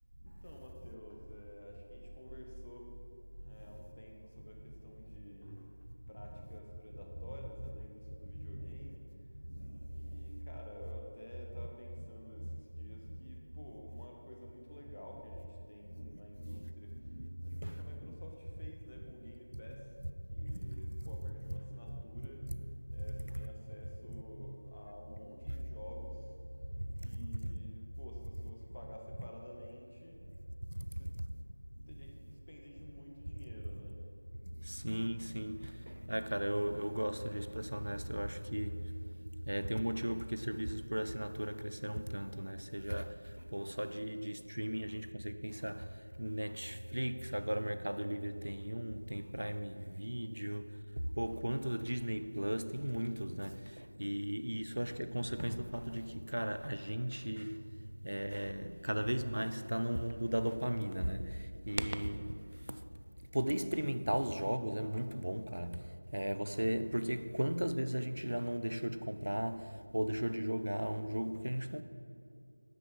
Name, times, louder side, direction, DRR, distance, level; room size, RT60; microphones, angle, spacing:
voice 1, 0.2-2.8 3.4-5.6 6.1-9.0 9.9-16.9 17.4-19.8 20.3-22.4 22.9-26.1 27.0-30.2 31.9-33.9, equal, 45° left, 1.2 m, -52 dB
voice 2, 8.3-8.8 9.4-10.3 12.4-12.6 12.9-13.4 15.9-18.1 19.5-19.6 20.0-21.6 21.9-22.7 23.1-23.5 24.1-24.6 25.5-25.6 26.7-27.1 27.4-27.5 30.6-30.9 31.8-31.9 34.6-39.2 39.4-57.7 58.0-62.8 63.3-71.8, equal, 65° right, 0.5 m, -37 dB
9.1 x 6.1 x 5.3 m
figure-of-eight pair, 175°, 0 cm